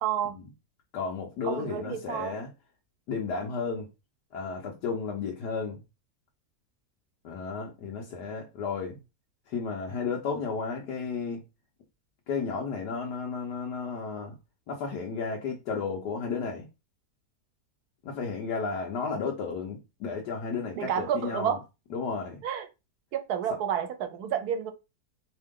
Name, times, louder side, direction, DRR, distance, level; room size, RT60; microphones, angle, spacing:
voice 1, 0.0-0.3 1.4-2.4 20.7-21.6 22.4-22.7 23.1-24.7, right 9 dB, 75° right, 1.2 m, -30 dB
voice 2, 0.9-2.5 3.1-3.9 4.3-5.8 7.2-9.0 9.5-11.4 12.3-14.3 14.7-16.6 18.0-21.6 21.9-22.4, left 5 dB, 80° left, 1.5 m, -33 dB
3.7 x 3.4 x 3.6 m
omnidirectional pair, 1.7 m